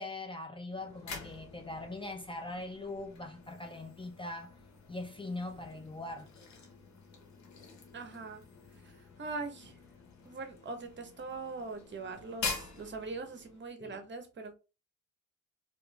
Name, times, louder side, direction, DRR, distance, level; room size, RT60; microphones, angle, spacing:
voice 1, 0.0-4.5 4.9-6.3 13.8-14.0, left 2 dB, 15° left, 0.6 m, -41 dB
sound 1, 0.7-13.7, left 4 dB, 70° left, 1.2 m, -46 dB
voice 2, 7.9-8.4 9.2-9.7 10.2-14.5, right 3 dB, 40° right, 1.0 m, -41 dB
2.9 x 2.9 x 3.3 m
cardioid pair, 90°, 30 cm